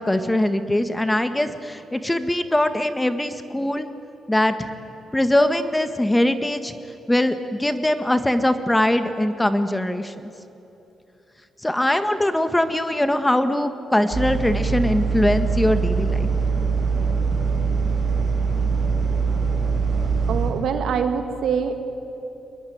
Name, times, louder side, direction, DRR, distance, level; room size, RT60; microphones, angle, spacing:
voice 1, 0.0-3.9 4.3-4.7 5.1-6.8 7.1-10.3 11.6-16.3, left 1 dB, 10° left, 9 dB, 1.6 m, -21 dB
sound 1, 14.1-20.5, right 5 dB, 55° right, 7.1 m, -22 dB
voice 2, 20.3-21.8, right 7 dB, 75° right, 7 dB, 2.2 m, -24 dB
24.0 x 21.0 x 9.4 m, 2.9 s
cardioid pair, 75°, 0 cm